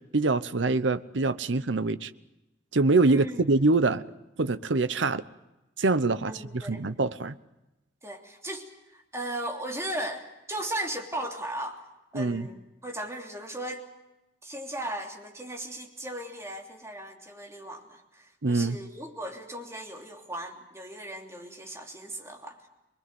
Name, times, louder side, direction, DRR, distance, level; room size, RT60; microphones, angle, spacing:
voice 1, 0.1-2.1 2.7-4.0 4.4-5.2 5.8-7.4 12.1-12.5 18.4-18.8, right 3 dB, 75° right, 0.9 m, -24 dB
voice 2, 3.1-3.4 6.2-6.8 8.0-11.9 12.1-13.8 14.4-22.7, right 1 dB, 15° right, 3.0 m, -37 dB
25.5 x 21.5 x 7.8 m
head